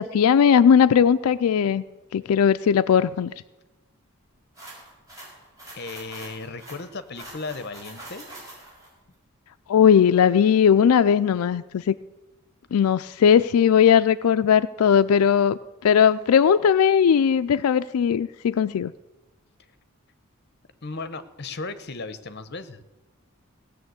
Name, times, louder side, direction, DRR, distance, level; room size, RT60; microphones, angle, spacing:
voice 1, 0.0-1.8 2.1-3.3 9.7-11.9 12.7-18.9, left 7 dB, 90° left, 12 dB, 0.4 m, -18 dB
sound 1, 4.6-8.9, right 1 dB, 15° right, 5.1 m, -43 dB
voice 2, 5.7-8.3 16.6-16.7 20.8-22.8, left 3 dB, 50° left, 12 dB, 0.9 m, -35 dB
17.0 x 6.9 x 8.0 m, 1.1 s
head